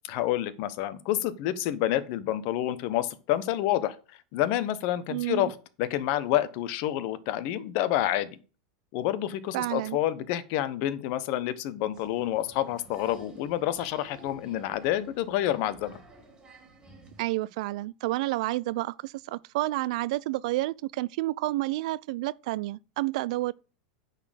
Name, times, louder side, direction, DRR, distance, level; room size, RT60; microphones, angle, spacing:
voice 1, 0.1-4.0 4.3-8.3 8.9-16.0, left 13 dB, 50° left, 0.9 m, -28 dB
voice 2, 5.1-5.5 9.5-10.0 17.2-23.5, right 18 dB, 65° right, 0.3 m, -30 dB
Applause, 11.9-17.3, right 1 dB, 15° right, 2.3 m, -52 dB
9.7 x 4.2 x 6.4 m
supercardioid pair, 140°, 4 cm